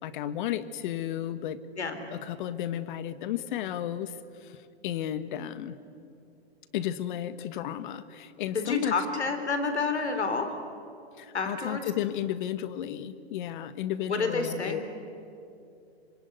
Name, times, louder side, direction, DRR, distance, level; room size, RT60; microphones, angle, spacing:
voice 1, 0.0-1.6 2.1-4.1 4.4-4.6 4.8-5.7 6.7-9.0 11.2-14.8, left 11 dB, 50° left, 13 dB, 1.5 m, -33 dB
voice 2, 8.5-10.5 11.3-11.8 14.1-14.8, left 4 dB, 90° left, 7 dB, 3.8 m, -29 dB
26.0 x 23.0 x 9.6 m, 2.6 s
hypercardioid pair, 130°, 33 cm